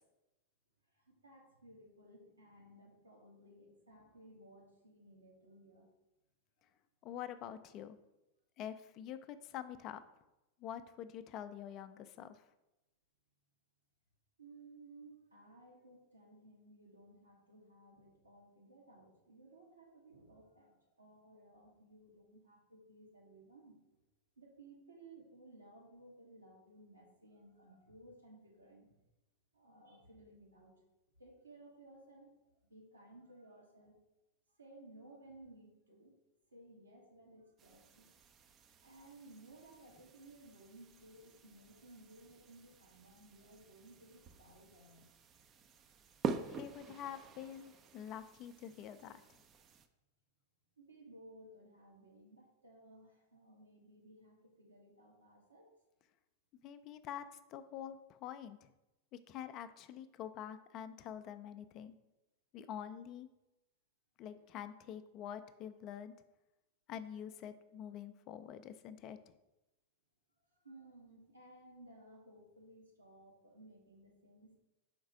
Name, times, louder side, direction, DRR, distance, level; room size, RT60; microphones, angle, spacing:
voice 1, 0.9-5.9 6.6-6.7 14.4-23.8 24.4-29.0 29.5-30.8 31.2-32.3 32.6-34.0 34.6-36.1 36.5-38.1 38.8-45.1 50.8-55.7 64.3-64.5 70.5-74.5, right 1 dB, 80° right, -2 dB, 1.5 m, -59 dB
voice 2, 7.0-8.0 8.6-10.0 10.6-12.4 46.4-49.2 56.6-58.7 59.3-62.0 62.5-63.3 64.2-66.1 66.9-69.2, left 9 dB, 35° left, 11 dB, 0.4 m, -46 dB
sound 1, 37.6-49.9, right 5 dB, 30° right, 0.4 m, -48 dB
5.1 x 3.9 x 4.7 m, 0.97 s
figure-of-eight pair, 90°, 0 cm